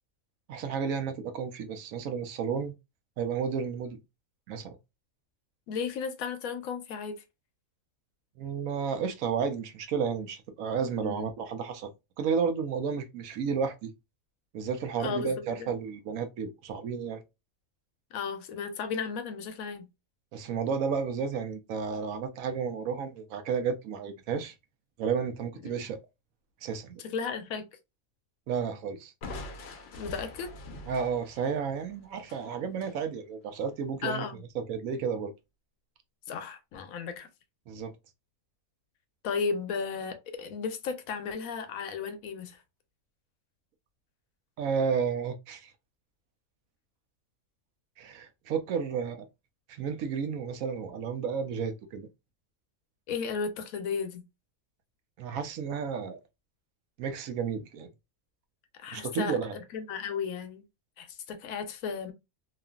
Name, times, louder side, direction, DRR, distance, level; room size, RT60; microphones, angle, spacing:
voice 1, 0.5-2.8 3.2-4.0 4.5-4.8 8.4-11.9 12.2-13.9 14.5-17.2 20.3-24.5 25.0-26.0 26.6-27.0 28.5-29.1 30.9-34.3 34.5-35.3 37.7-37.9 44.6-45.7 48.0-49.3 49.7-52.1 55.2-56.2 57.0-57.9 58.9-59.6, right 6 dB, 80° right, 1.0 m, -32 dB
voice 2, 5.7-7.2 11.0-11.3 15.0-15.3 15.6-15.7 18.1-19.9 25.6-25.7 27.1-27.7 29.9-30.5 34.0-34.4 36.3-37.3 39.2-42.6 53.1-54.3 58.8-60.6 61.0-62.1, left 5 dB, 90° left, 1.1 m, -34 dB
Crushing, 29.2-33.0, left 2 dB, 60° left, 0.8 m, -44 dB
2.9 x 2.5 x 2.2 m
omnidirectional pair, 1.4 m